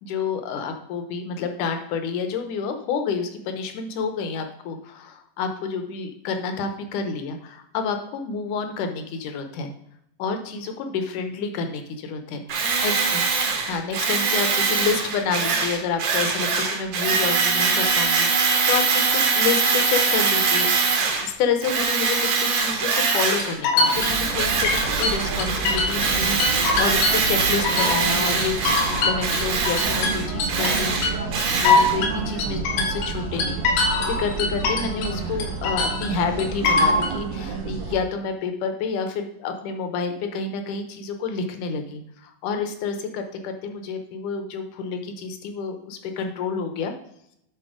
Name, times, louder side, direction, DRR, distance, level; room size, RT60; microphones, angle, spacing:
voice 1, 0.0-9.7 10.2-13.2 13.7-46.9, left 5 dB, 70° left, 6 dB, 2.3 m, -29 dB
Tools, 12.5-21.3 21.6-23.6 23.8-32.0, right 4 dB, 70° right, 2.7 m, -23 dB
sound 1, 23.1-26.1 26.4-28.1 28.4-35.2 35.4-37.1, left 3 dB, 85° left, 3.3 m, -23 dB
sound 2, 23.9-38.0, right 4 dB, 90° right, 2.9 m, -30 dB
10.5 x 4.2 x 4.9 m, 0.77 s
omnidirectional pair, 4.0 m